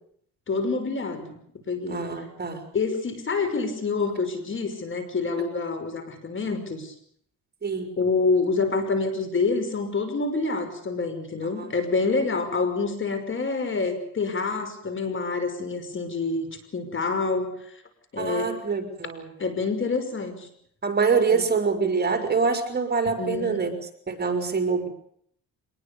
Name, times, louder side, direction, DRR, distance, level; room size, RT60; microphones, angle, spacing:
voice 1, 0.5-1.4 1.7-2.0 2.7-6.9 8.0-16.5 16.7-17.8 18.1-18.6 19.4-20.5 21.3-21.5 23.2-23.7, left 4 dB, 40° left, 10 dB, 5.7 m, -27 dB
voice 2, 1.9-2.6 7.6-7.9 11.6-11.7 18.2-19.3 20.8-23.7 24.1-24.9, right 5 dB, 35° right, 6 dB, 5.1 m, -25 dB
25.5 x 20.5 x 7.0 m, 0.66 s
cardioid pair, 90°, 30 cm